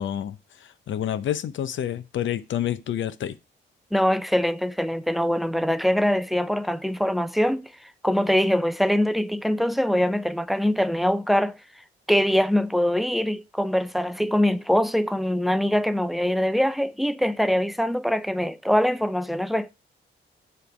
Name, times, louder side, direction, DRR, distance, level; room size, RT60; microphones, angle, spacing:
voice 1, 0.0-3.4, left 10 dB, 70° left, 0.6 m, -29 dB
voice 2, 3.9-7.7 8.0-11.6 12.1-19.7, equal, ahead, 0.4 m, -23 dB
7.1 x 3.3 x 5.6 m
cardioid pair, 95°, 20 cm